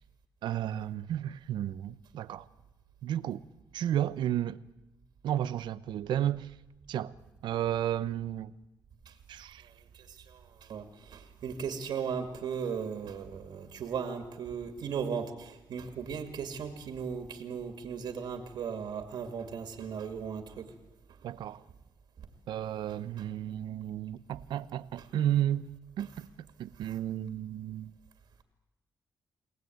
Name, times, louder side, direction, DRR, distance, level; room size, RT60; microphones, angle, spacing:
voice 1, 0.4-2.5 3.0-3.4 3.7-4.6 5.2-6.5 6.9-7.1 7.4-8.5 9.3-9.7 21.2-21.6 22.5-25.7 26.0-26.3 26.6-27.9, right 11 dB, 90° right, 0.8 m, -32 dB
voice 2, 11.1-20.6, right 6 dB, 70° right, 2.4 m, -36 dB
25.5 x 18.5 x 9.3 m
cardioid pair, 110°, 8 cm